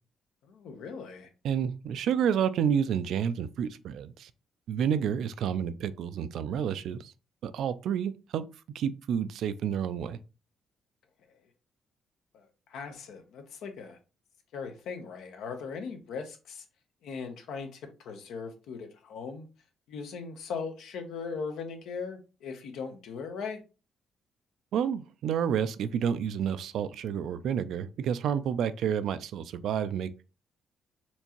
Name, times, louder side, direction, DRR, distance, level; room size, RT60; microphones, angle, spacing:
voice 1, 0.4-1.3 12.3-14.0 14.5-16.6 17.0-19.5 19.9-23.6, left 5 dB, 80° left, 0.8 m, -39 dB
voice 2, 1.4-4.3 4.7-7.1 7.4-8.4 8.7-10.2 24.7-30.2, right 8 dB, 75° right, 0.3 m, -29 dB
4.4 x 2.8 x 2.9 m
cardioid pair, 90°, 0 cm